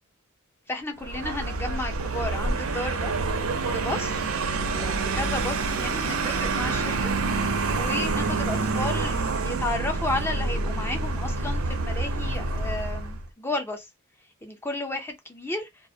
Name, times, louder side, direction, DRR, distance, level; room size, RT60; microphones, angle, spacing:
voice 1, 0.7-3.1 3.7-4.2 4.8-13.9 14.4-15.9, left 2 dB, 10° left, 0.5 m, -33 dB
Vehicle, 1.0-13.3, right 3 dB, 90° right, 0.6 m, -27 dB
2.4 x 2.0 x 2.6 m
head